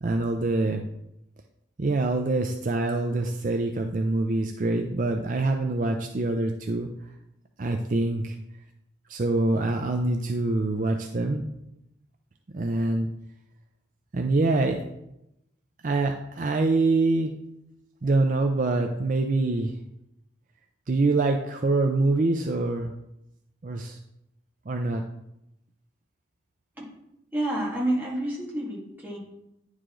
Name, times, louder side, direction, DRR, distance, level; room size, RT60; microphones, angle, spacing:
voice 1, 0.0-0.8 1.8-6.9 7.6-8.4 9.1-11.5 12.5-13.1 14.1-14.8 15.8-17.4 18.0-19.7 20.9-22.9 23.6-24.0 24.7-25.0, right 2 dB, 45° right, 4 dB, 0.5 m, -25 dB
voice 2, 27.3-29.2, right 1 dB, 10° right, -5 dB, 2.0 m, -29 dB
9.8 x 4.8 x 3.8 m, 0.85 s
head